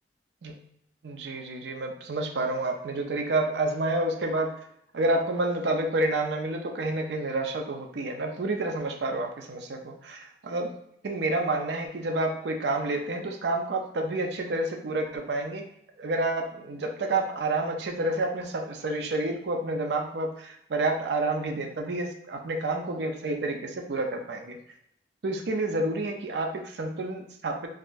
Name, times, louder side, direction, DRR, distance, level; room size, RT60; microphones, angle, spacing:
voice 1, 1.0-4.5 4.9-10.7 11.0-15.6 16.0-24.6 25.2-27.7, right 2 dB, 65° right, 3 dB, 0.5 m, -29 dB
3.6 x 2.1 x 2.5 m, 0.73 s
head